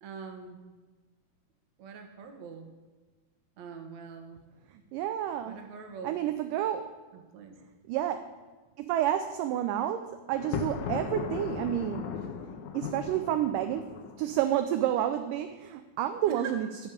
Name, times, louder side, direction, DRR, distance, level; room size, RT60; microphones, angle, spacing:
voice 1, 0.0-0.6 1.8-2.7 3.6-4.4 5.5-6.2 7.1-7.6 12.2-12.3 12.9-13.0 16.3-16.6, right 4 dB, 60° right, 5 dB, 2.3 m, -43 dB
voice 2, 4.9-5.6 6.0-6.9 7.9-8.3 8.8-12.2 12.7-16.7, right 11 dB, 80° right, 8 dB, 2.0 m, -30 dB
Thunder, 10.3-14.4, left 7 dB, 80° left, 2.6 m, -37 dB
12.0 x 5.3 x 8.8 m, 1.3 s
omnidirectional pair, 4.1 m